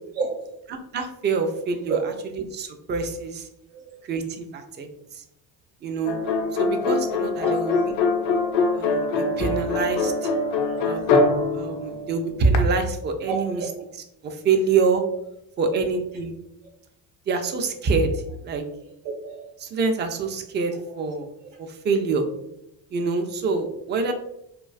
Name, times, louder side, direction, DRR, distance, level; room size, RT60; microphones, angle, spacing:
voice 1, 0.2-0.5 1.9-2.0 3.7-4.0 7.4-7.8 10.5-11.0 13.3-13.7 15.6-15.8 19.2-19.5, right 4 dB, 45° right, 0 dB, 0.9 m, -32 dB
voice 2, 0.9-2.0 2.5-3.5 4.0-5.2 5.8-6.2 6.6-7.7 8.7-10.3 10.8-11.2 11.5-13.6 14.2-15.0 15.6-16.4 17.3-18.6 19.6-21.3 21.6-22.3 22.9-24.1, right 4 dB, 25° right, 5 dB, 0.3 m, -25 dB
sound 1, 6.1-12.6, left 3 dB, 80° left, 0.5 m, -23 dB
2.4 x 2.3 x 2.3 m, 0.80 s
supercardioid pair, 70°, 45 cm